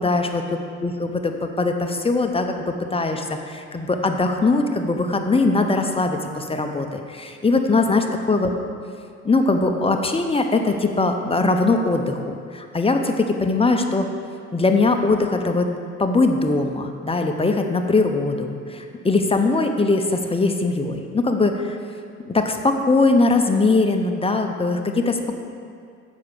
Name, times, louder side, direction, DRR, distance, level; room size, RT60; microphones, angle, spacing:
voice 1, 0.0-8.5 9.2-14.1 14.5-15.7 16.0-21.8 22.3-25.4, left 3 dB, 20° left, 5 dB, 0.8 m, -21 dB
7.2 x 5.9 x 6.7 m, 2.3 s
cardioid pair, 90°, 30 cm